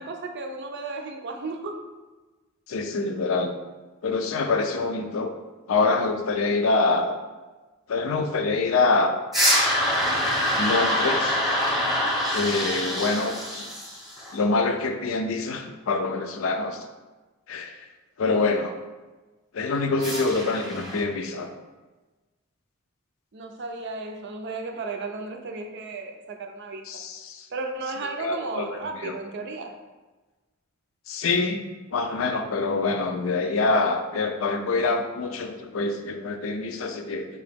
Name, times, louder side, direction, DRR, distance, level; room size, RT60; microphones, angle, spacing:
voice 1, 0.0-1.9 20.0-20.4 23.3-27.0 27.5-29.7, right 3 dB, 55° right, 4 dB, 0.5 m, -34 dB
voice 2, 2.7-3.5 4.0-5.3 5.7-7.2 7.9-9.1 10.6-11.4 12.3-13.4 14.3-16.8 17.5-17.8 18.2-18.8 19.5-21.5 26.9-27.4 28.2-28.7 29.0-29.1 31.1-31.6 31.9-37.3, left 3 dB, 70° left, 6 dB, 0.4 m, -25 dB
sound 1, 9.3-14.3 20.0-21.0, equal, ahead, 0.8 m, -25 dB
4.7 x 2.9 x 3.4 m, 1.2 s
head